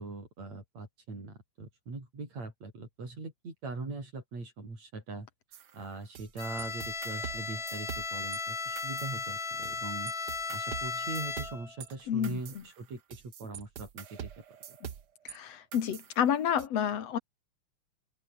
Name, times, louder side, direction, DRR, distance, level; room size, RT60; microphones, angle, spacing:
voice 1, 0.0-5.3 5.7-10.1 10.5-14.3 14.7-14.8, right 3 dB, 55° right, 8.9 m, -41 dB
sound 1, 5.5-8.4 8.8-9.8 10.1-15.4 15.7-16.7, right 9 dB, 70° right, 1.0 m, -45 dB
Bowed string instrument, 6.4-11.8, left 4 dB, 35° left, 4.4 m, -36 dB
voice 2, 12.1-12.6 14.8-14.9 15.2-17.2, left 9 dB, 55° left, 2.9 m, -30 dB
open air
omnidirectional pair, 3.7 m